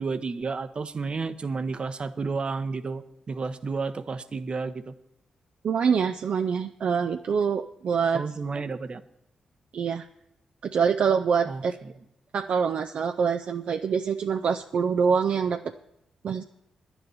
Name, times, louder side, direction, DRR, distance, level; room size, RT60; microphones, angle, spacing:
voice 1, 0.0-4.9 8.1-9.0 11.5-11.9, right 4 dB, 50° right, 12 dB, 0.8 m, -31 dB
voice 2, 5.6-8.2 9.7-10.1 10.6-11.7 12.3-15.6 16.2-16.4, right 6 dB, 65° right, 6 dB, 0.4 m, -25 dB
10.5 x 7.0 x 9.4 m, 0.83 s
supercardioid pair, 40°, 2 cm